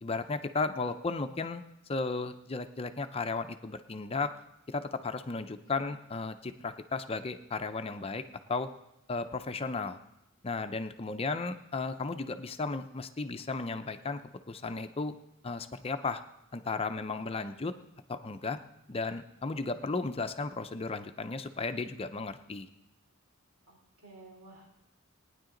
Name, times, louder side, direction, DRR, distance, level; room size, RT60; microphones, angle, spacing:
voice 1, 0.0-1.6 1.9-4.3 4.7-8.2 8.5-8.7 9.1-10.0 10.4-14.2 14.5-15.1 15.4-16.2 16.5-17.7 18.1-18.6 18.9-22.7, left 3 dB, 25° left, 9 dB, 0.5 m, -34 dB
voice 2, 23.7-24.7, right 1 dB, 90° right, -1 dB, 3.4 m, -53 dB
18.5 x 9.8 x 3.8 m, 0.85 s
head